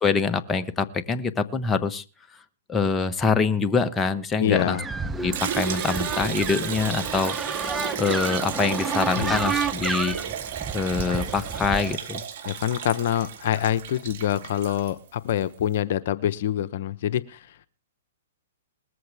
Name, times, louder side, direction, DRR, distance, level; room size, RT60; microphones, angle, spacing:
voice 1, 0.0-2.0 2.7-4.8 5.2-7.4 7.6-7.7 8.0-10.2 10.7-12.2, left 4 dB, 15° left, 8 dB, 1.3 m, -25 dB
voice 2, 4.4-4.8 9.2-9.4 12.4-17.6, left 11 dB, 60° left, 12 dB, 1.0 m, -25 dB
sound 1, 4.6-11.9, right 4 dB, 10° right, 0.9 m, -31 dB
Liquid, 5.3-15.4, right 9 dB, 55° right, 4.7 m, -33 dB
20.5 x 14.0 x 3.5 m, 0.34 s
hypercardioid pair, 125°, 0 cm